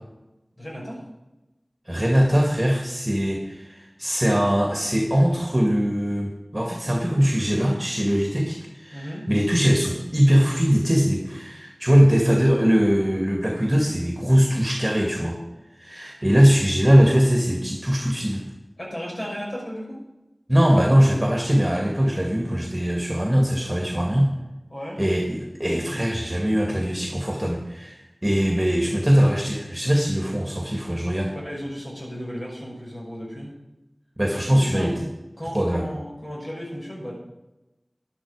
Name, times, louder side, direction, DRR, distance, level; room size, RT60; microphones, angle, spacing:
voice 1, 0.6-1.0 8.9-9.2 18.8-20.0 24.7-25.0 31.3-33.5 34.4-34.9 35.4-37.1, equal, 50° left, -3 dB, 5.6 m, -34 dB
voice 2, 1.9-15.4 15.8-18.4 20.5-24.3 25.0-31.3 34.2-34.9 35.5-35.8, equal, 20° right, 1 dB, 2.2 m, -21 dB
12.5 x 10.5 x 5.0 m, 1.0 s
wide cardioid pair, 45°, 0 cm